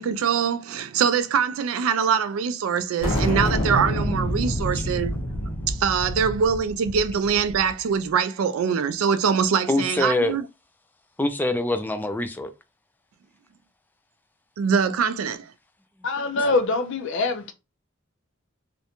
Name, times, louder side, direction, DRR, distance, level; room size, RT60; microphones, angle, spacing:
voice 1, 0.0-5.1 5.7-10.4 14.6-15.5, right 6 dB, 85° right, 0.3 m, -23 dB
sound 1, 3.0-7.7, equal, 85° left, 0.9 m, -27 dB
voice 2, 9.7-10.4 11.2-12.5, left 1 dB, 10° left, 0.3 m, -24 dB
voice 3, 16.0-17.5, left 3 dB, 65° left, 0.5 m, -24 dB
2.5 x 2.1 x 2.8 m
head